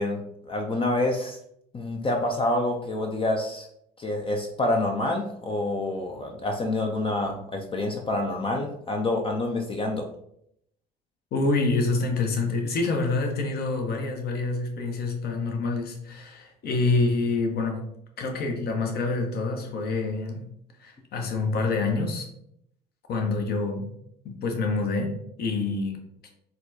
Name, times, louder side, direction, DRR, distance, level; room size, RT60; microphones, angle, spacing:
voice 1, 0.0-1.4 1.7-3.7 4.0-10.0, left 2 dB, 25° left, 2 dB, 0.5 m, -27 dB
voice 2, 11.3-17.8 18.2-20.4 20.8-22.3 23.1-23.9 24.2-25.1 25.4-26.3, left 3 dB, 50° left, 3 dB, 0.9 m, -27 dB
4.1 x 2.2 x 2.8 m, 0.73 s
hypercardioid pair, 65°, 21 cm